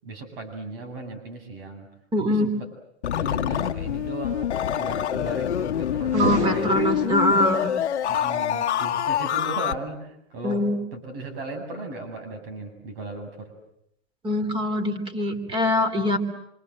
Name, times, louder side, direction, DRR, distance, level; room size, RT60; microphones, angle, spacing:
voice 1, 0.0-1.9 2.2-2.7 3.1-6.7 8.1-13.5, right 2 dB, 55° right, 6 dB, 8.0 m, -36 dB
voice 2, 2.1-2.5 6.1-7.7 10.4-10.8 14.2-16.2, left 1 dB, 15° right, 9 dB, 3.1 m, -23 dB
sound 1, 3.0-9.7, left 10 dB, 80° left, 1.2 m, -26 dB
sound 2, 6.0-7.4, right 4 dB, 80° right, 2.5 m, -31 dB
27.5 x 26.0 x 7.8 m, 0.78 s
hypercardioid pair, 145°, 34 cm